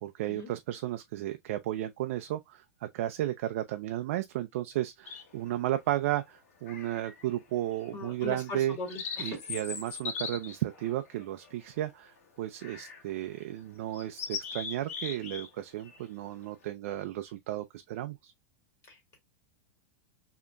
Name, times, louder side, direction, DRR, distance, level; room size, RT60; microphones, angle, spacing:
voice 1, 0.0-8.8 9.2-18.3, right 14 dB, 65° right, 0.4 m, -34 dB
sound 1, 5.1-5.6 6.7-7.3 7.7-7.9 8.5-11.9 12.6-13.1 13.4-13.5 13.9-15.5 15.8-16.0, left 6 dB, 75° left, 1.1 m, -40 dB
voice 2, 7.9-9.4 18.9-19.2, left 3 dB, 35° left, 2.2 m, -40 dB
4.9 x 2.9 x 2.2 m
hypercardioid pair, 120°, 8 cm